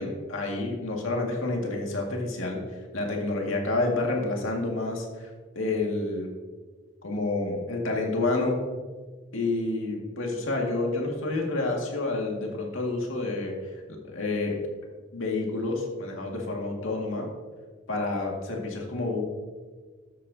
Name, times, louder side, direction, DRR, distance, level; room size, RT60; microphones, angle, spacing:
voice 1, 0.0-2.6 2.9-5.3 5.6-6.3 7.0-8.6 9.3-13.5 13.9-14.6 15.1-17.3 17.9-19.2, left 2 dB, 90° left, 0 dB, 2.0 m, -29 dB
12.5 x 8.8 x 2.8 m, 1.5 s
head